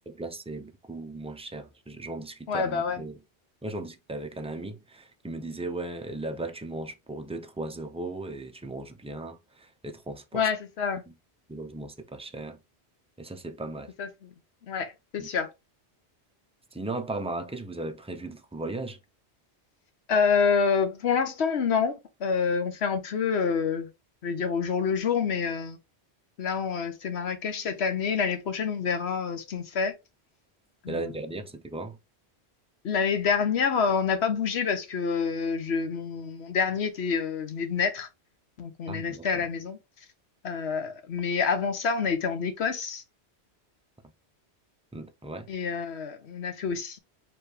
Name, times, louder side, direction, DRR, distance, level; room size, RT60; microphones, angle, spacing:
voice 1, 0.1-3.2 3.6-10.5 11.5-12.6 13.2-13.9 15.2-15.3 16.7-19.0 30.9-32.0 38.9-39.4 44.9-45.5, right 2 dB, 10° right, 0.4 m, -37 dB
voice 2, 2.5-3.0 10.3-11.0 14.0-14.1 14.6-15.5 20.1-23.9 24.2-25.8 26.4-29.9 30.8-31.1 32.8-38.1 38.6-39.8 40.4-43.0 45.5-47.0, left 6 dB, 75° left, 1.2 m, -27 dB
4.7 x 3.3 x 3.2 m
omnidirectional pair, 1.1 m